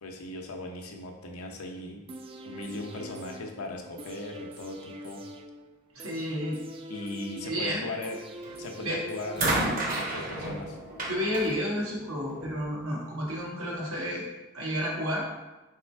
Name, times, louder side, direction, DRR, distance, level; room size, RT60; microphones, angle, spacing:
voice 1, 0.0-2.0 2.4-5.2 6.9-8.2 8.6-10.8, left 2 dB, 85° left, 2 dB, 0.7 m, -38 dB
sound 1, 2.1-10.1 10.4-10.5, right 1 dB, 25° right, 0.3 m, -44 dB
voice 2, 5.9-6.6 7.4-7.8 8.8-9.0 11.0-14.3 14.5-15.3, equal, 85° right, -3 dB, 1.3 m, -31 dB
sound 2, 8.4-8.8 9.4-12.6 13.6-13.7, right 2 dB, 40° right, 0.9 m, -32 dB
3.7 x 3.3 x 4.4 m, 1.1 s
head